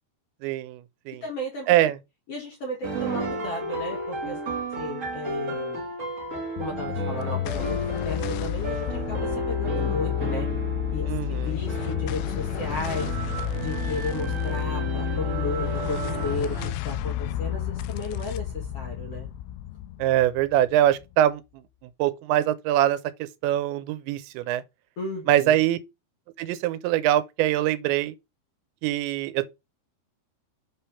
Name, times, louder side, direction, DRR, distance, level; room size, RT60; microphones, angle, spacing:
voice 1, 0.4-1.2 1.7-2.0 11.1-11.6 20.0-24.6 25.3-25.8 26.4-28.1 28.8-29.5, right 12 dB, 85° right, 3.0 m, -24 dB
voice 2, 1.2-1.7 2.3-4.4 4.8-5.8 6.6-7.8 8.0-10.5 10.9-13.2 13.5-19.3 25.0-25.6, left 2 dB, 50° left, 1.9 m, -34 dB
sound 1, 2.8-16.7, right 2 dB, 60° right, 0.8 m, -33 dB
sound 2, 6.6-21.2, left 12 dB, 85° left, 2.4 m, -31 dB
7.6 x 3.4 x 5.6 m
omnidirectional pair, 5.1 m